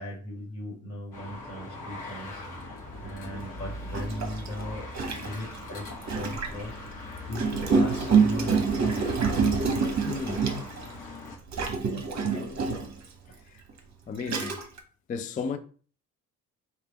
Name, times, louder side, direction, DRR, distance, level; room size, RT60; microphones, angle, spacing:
voice 1, 0.0-2.4 3.0-6.8 7.3-9.3 13.2-13.3, left 1 dB, 75° left, 1.7 m, -38 dB
Leningradskiy bridge creak, 1.1-11.4, left 2 dB, 45° left, 1.5 m, -41 dB
Gurgling, 3.0-3.2 3.9-6.7 7.3-10.9 11.5-13.0 13.7-13.8 14.2-14.8, right 5 dB, 40° right, 1.0 m, -26 dB
voice 2, 10.1-10.5 12.1-12.6 14.1-14.6 15.1-15.6, left 5 dB, 20° left, 0.4 m, -34 dB
3.3 x 2.9 x 4.1 m
hypercardioid pair, 50°, 44 cm